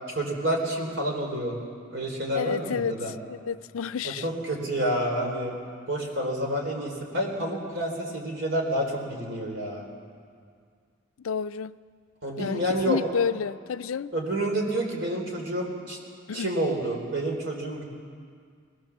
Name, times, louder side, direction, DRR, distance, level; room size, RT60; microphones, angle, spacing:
voice 1, 0.1-1.6 1.9-3.1 4.0-5.6 5.9-9.9 12.2-13.0 14.1-16.0 16.3-17.8, right 1 dB, 60° right, 4.0 m, -29 dB
voice 2, 2.3-3.0 3.3-4.3 11.2-11.8 12.4-14.1 16.3-16.5, left 6 dB, 80° left, 0.4 m, -30 dB
21.0 x 19.5 x 7.3 m
head